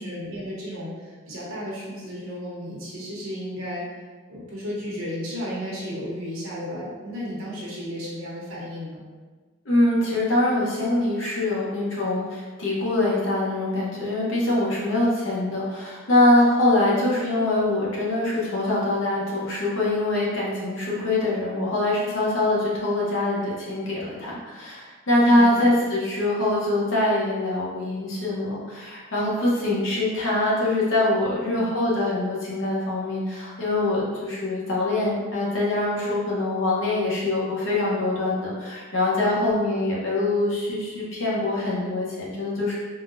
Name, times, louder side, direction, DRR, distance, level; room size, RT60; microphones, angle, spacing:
voice 1, 0.0-3.8 4.3-9.0 16.8-17.1 25.3-25.7 31.4-31.7 39.3-39.5, equal, 70° right, -5 dB, 1.0 m, -33 dB
voice 2, 9.6-42.7, left 2 dB, 60° left, -6 dB, 0.9 m, -23 dB
3.7 x 2.2 x 2.6 m, 1.4 s
head